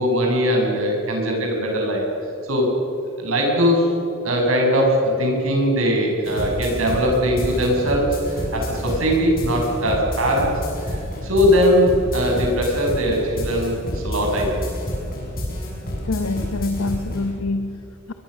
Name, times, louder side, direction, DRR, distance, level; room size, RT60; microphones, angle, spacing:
voice 1, 0.0-2.0 2.4-2.7 3.2-3.9 4.2-10.5 10.8-14.6, equal, 85° right, 0 dB, 7.0 m, -20 dB
sound 1, 6.2-17.3, left 1 dB, 45° left, 6.8 m, -29 dB
voice 2, 16.0-18.1, left 2 dB, 90° left, 9 dB, 1.0 m, -26 dB
22.0 x 22.0 x 6.6 m, 2.9 s
head